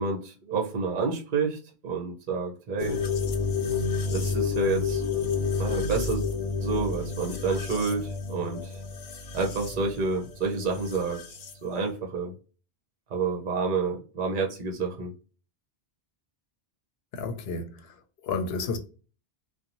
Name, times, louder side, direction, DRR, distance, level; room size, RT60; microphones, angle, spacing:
voice 1, 0.0-3.0 4.1-5.0 5.6-6.3 6.6-8.8 9.3-11.2 11.6-12.3 13.1-15.1, right 4 dB, 55° right, 0.8 m, -29 dB
sound 1, 2.8-11.5, left 5 dB, 50° left, 0.4 m, -30 dB
voice 2, 17.1-17.9 18.2-18.8, left 4 dB, 75° left, 0.8 m, -31 dB
2.6 x 2.1 x 2.8 m
omnidirectional pair, 1.1 m